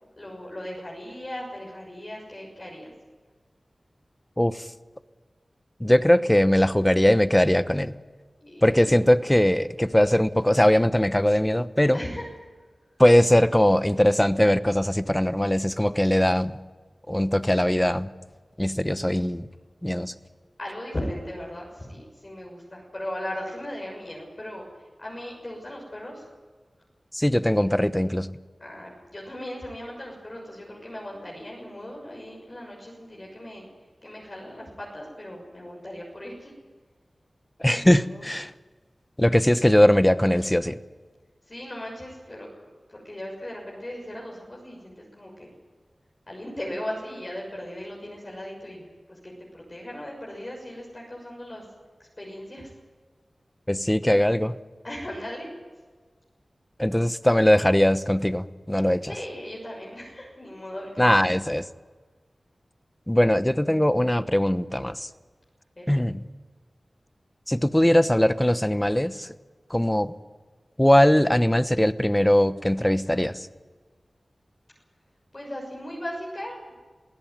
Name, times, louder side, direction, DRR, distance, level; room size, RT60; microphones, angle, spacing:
voice 1, 0.2-2.9 8.4-9.0 11.9-12.3 20.6-24.6 25.0-26.2 28.6-33.6 34.0-36.5 37.7-38.3 41.5-42.5 42.9-45.5 46.3-51.6 52.2-52.7 54.8-55.5 59.1-61.2 65.8-66.2 75.3-76.8, left 1 dB, 35° left, -2 dB, 6.5 m, -37 dB
voice 2, 5.8-7.9 8.6-12.0 13.0-16.6 17.1-18.1 18.6-19.5 19.8-20.1 27.1-28.3 37.6-38.5 39.2-40.8 53.7-54.6 56.8-59.1 61.0-61.6 63.1-65.1 65.9-66.2 67.5-69.3 69.7-70.1 70.8-73.5, left 1 dB, 10° left, 13 dB, 0.9 m, -20 dB
23.0 x 16.5 x 9.4 m, 1.4 s
wide cardioid pair, 50°, 0 cm